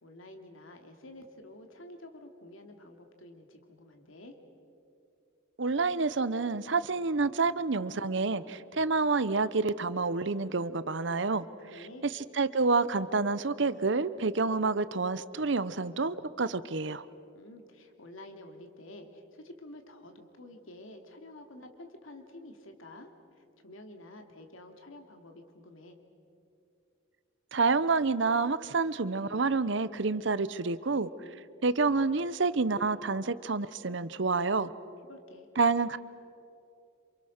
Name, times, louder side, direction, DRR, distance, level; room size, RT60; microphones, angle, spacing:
voice 1, 0.0-4.4 11.6-12.1 17.3-23.1 23.6-26.0 35.1-35.5, left 1 dB, 85° left, 5 dB, 2.7 m, -49 dB
voice 2, 5.6-11.5 12.4-17.0 27.5-31.1 31.6-34.7 35.6-36.0, right 4 dB, 65° right, 15 dB, 0.8 m, -28 dB
28.0 x 27.5 x 6.5 m, 2.7 s
head